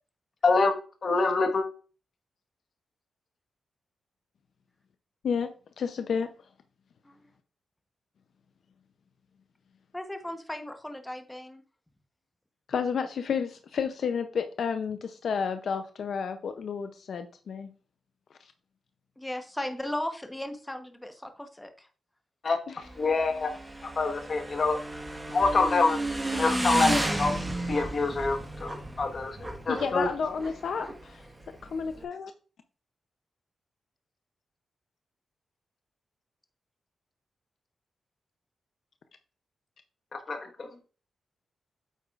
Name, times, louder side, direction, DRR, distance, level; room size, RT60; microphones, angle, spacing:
voice 1, 0.4-0.7 1.0-1.6 22.4-22.6 23.0-23.6 23.9-24.8 25.3-26.0 26.3-27.4 27.7-30.1 40.1-40.7, left 3 dB, 50° left, 5 dB, 1.3 m, -26 dB
voice 2, 5.8-6.3 12.7-17.7 22.7-22.8 29.7-31.2 31.6-32.3, left 6 dB, 70° left, 8 dB, 0.5 m, -31 dB
voice 3, 9.9-11.6 19.2-21.9, left 1 dB, 10° left, 6 dB, 0.9 m, -36 dB
Motorcycle / Engine, 22.8-32.0, right 1 dB, 15° right, 1.4 m, -33 dB
8.4 x 8.1 x 2.4 m, 0.39 s
cardioid pair, 95°, 0 cm